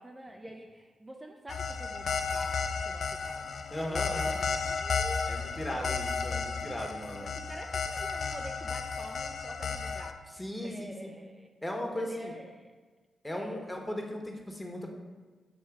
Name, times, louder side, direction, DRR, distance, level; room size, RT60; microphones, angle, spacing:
voice 1, 0.0-6.1 7.1-10.2 10.6-11.5 12.0-12.7 13.3-13.7, right 1 dB, 25° right, 1 dB, 0.6 m, -47 dB
sound 1, 1.5-10.1, left 5 dB, 55° left, 0.4 m, -33 dB
voice 2, 3.7-4.4 5.3-7.3 10.4-11.1 11.6-12.3 13.2-14.9, left 1 dB, 15° left, 1 dB, 1.3 m, -37 dB
7.4 x 3.1 x 4.7 m, 1.4 s
hypercardioid pair, 40°, 0 cm